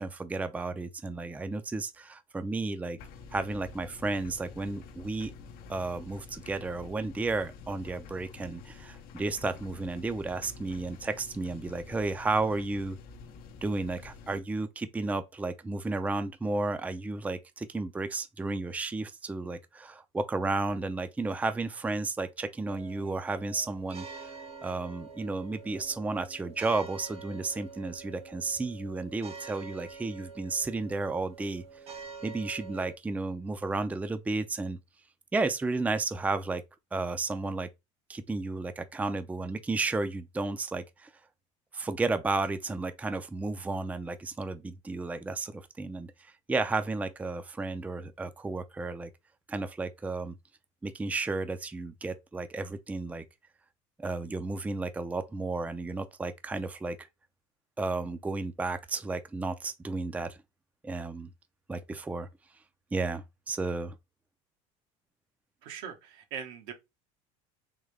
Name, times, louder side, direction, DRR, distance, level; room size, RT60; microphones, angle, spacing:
voice 1, 0.0-3.0 3.3-5.3 5.7-13.0 13.6-24.3 24.6-31.6 32.2-34.8 35.3-36.6 36.9-37.7 38.1-41.1 41.7-49.1 49.5-50.4 50.8-53.2 54.0-57.0 57.8-60.4 60.8-61.3 61.7-62.3 62.9-64.0, right 3 dB, 10° right, 0.4 m, -33 dB
sound 1, 3.0-14.4, left 4 dB, 65° left, 0.7 m, -48 dB
sound 2, 22.7-33.0, right 5 dB, 35° right, 0.8 m, -47 dB
voice 2, 65.6-66.7, right 7 dB, 80° right, 1.1 m, -41 dB
3.7 x 3.1 x 3.3 m
supercardioid pair, 105°, 16 cm